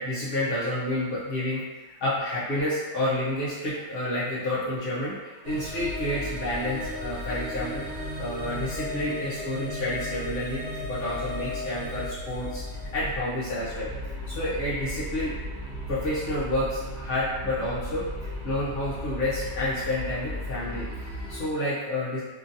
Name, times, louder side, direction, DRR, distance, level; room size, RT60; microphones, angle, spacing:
voice 1, 0.0-7.9 8.2-12.6 12.9-15.3 15.9-22.2, left 1 dB, 60° left, -10 dB, 0.8 m, -30 dB
sound 1, 5.4-21.5, left 1 dB, 60° right, 0.9 m, -35 dB
2.9 x 2.6 x 2.6 m, 1.3 s
omnidirectional pair, 1.2 m